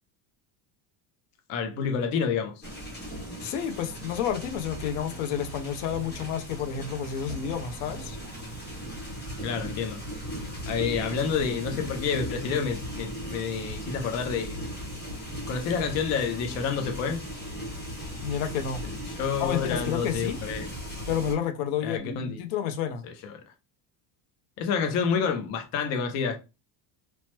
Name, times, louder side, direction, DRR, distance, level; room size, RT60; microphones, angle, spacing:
voice 1, 1.5-2.6 9.4-10.0 10.7-14.6 15.5-17.2 18.8-18.9 19.2-20.7 21.8-22.4 23.0-23.4 24.6-26.4, left 6 dB, 35° left, 0.4 m, -29 dB
sound 1, 2.6-21.3, equal, 20° left, 0.9 m, -37 dB
voice 2, 3.4-8.2 18.2-18.8 19.4-20.4 21.1-23.1, left 8 dB, 90° left, 0.7 m, -30 dB
3.1 x 2.0 x 2.9 m
cardioid pair, 165°, 49 cm